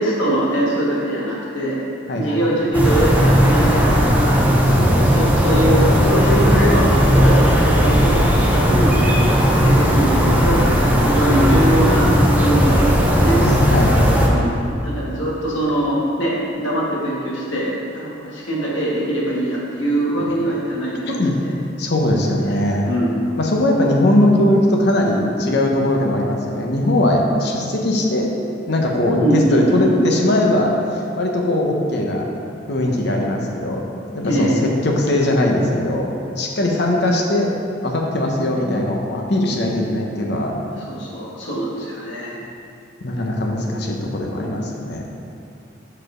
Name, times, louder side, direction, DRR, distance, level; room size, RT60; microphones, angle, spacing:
voice 1, 0.0-1.9 2.1-4.4 5.0-9.2 9.5-13.4 14.3-21.1 21.3-21.5 22.9-23.5 29.2-30.0 34.2-34.6 38.5-38.8 40.8-42.4 44.4-44.6, right 1 dB, 80° left, -5 dB, 1.7 m, -22 dB
sound 1, 2.7-14.3, equal, 10° right, 0.7 m, -15 dB
voice 2, 4.8-5.1 13.4-14.2 21.1-21.3 21.8-22.9 23.4-28.3 28.7-32.3 32.7-33.8 34.1-36.1 36.4-37.5 37.8-40.5 43.0-45.0, left 1 dB, 60° left, 0 dB, 0.8 m, -20 dB
6.5 x 4.6 x 5.0 m, 2.6 s
head